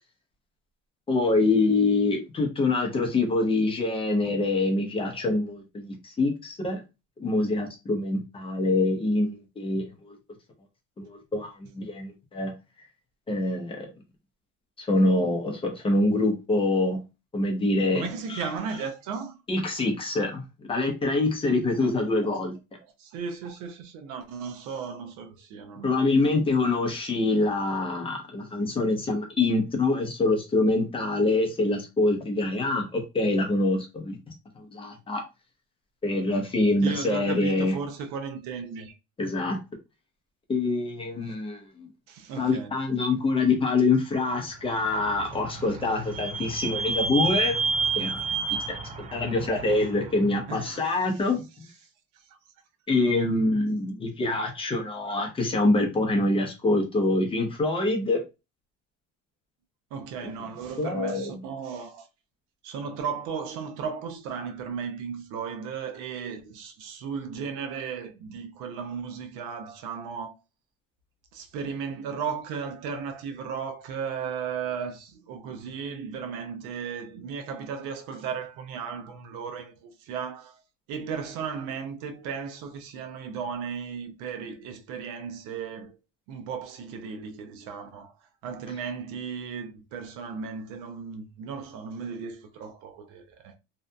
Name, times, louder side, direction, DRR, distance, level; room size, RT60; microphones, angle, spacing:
voice 1, 1.1-6.8 7.2-10.2 11.0-12.5 13.3-13.9 14.8-17.0 17.3-18.5 19.5-22.5 25.8-34.2 34.6-35.2 36.0-37.7 39.2-39.6 40.5-41.9 42.4-47.6 48.0-48.3 49.1-51.4 52.9-58.2 60.2-60.3 60.8-61.4, left 2 dB, 15° left, 0.7 m, -25 dB
voice 2, 17.9-19.4 21.8-21.9 23.0-25.9 36.8-39.0 42.1-42.7 50.5-50.8 52.3-52.4 59.9-62.1 62.6-70.3 71.3-80.6 80.9-86.0 86.3-88.1 88.4-93.6, right 6 dB, 75° right, 0.6 m, -35 dB
Vehicle / Squeak, 44.7-50.3, right 4 dB, 25° right, 0.3 m, -30 dB
2.7 x 2.4 x 2.2 m
cardioid pair, 140°, 31 cm